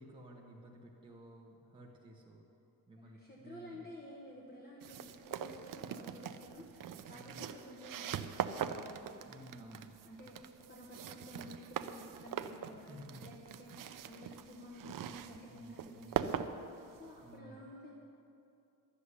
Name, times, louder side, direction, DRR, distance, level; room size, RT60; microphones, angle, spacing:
voice 1, 0.0-2.4 2.9-3.9 7.1-7.4 9.2-10.0 12.9-13.3 13.6-13.8 15.5-16.2 17.2-17.7, right 1 dB, 15° right, -3 dB, 1.3 m, -54 dB
voice 2, 3.0-9.4 10.0-16.6 16.9-17.9, left 1 dB, 25° left, -3 dB, 1.3 m, -52 dB
sound 1, 4.8-17.3, right 8 dB, 60° right, 0.6 m, -42 dB
11.5 x 7.2 x 9.8 m, 2.7 s
wide cardioid pair, 165°, 37 cm